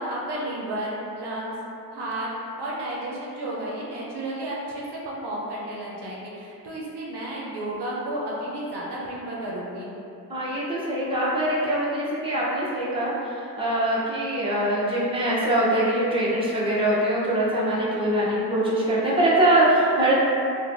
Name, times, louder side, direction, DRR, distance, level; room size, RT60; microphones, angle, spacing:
voice 1, 0.0-1.5 1.9-2.3 2.6-9.9, right 1 dB, 70° right, -5 dB, 0.6 m, -32 dB
voice 2, 10.3-20.1, right 1 dB, 15° right, -7 dB, 0.7 m, -23 dB
2.9 x 2.2 x 2.5 m, 2.7 s
cardioid pair, 45°, 42 cm